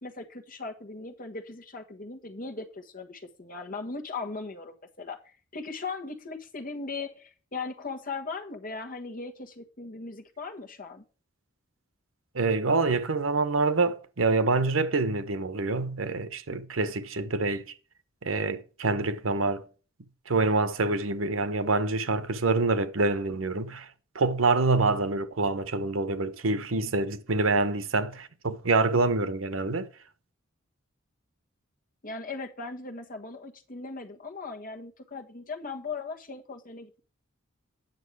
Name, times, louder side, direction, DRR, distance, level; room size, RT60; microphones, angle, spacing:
voice 1, 0.0-5.2 5.5-11.0 32.0-37.0, left 4 dB, 45° left, 1.4 m, -38 dB
voice 2, 12.3-17.7 18.2-19.6 20.3-23.9 24.1-29.9, right 3 dB, 90° right, 1.0 m, -26 dB
9.1 x 6.6 x 4.8 m
head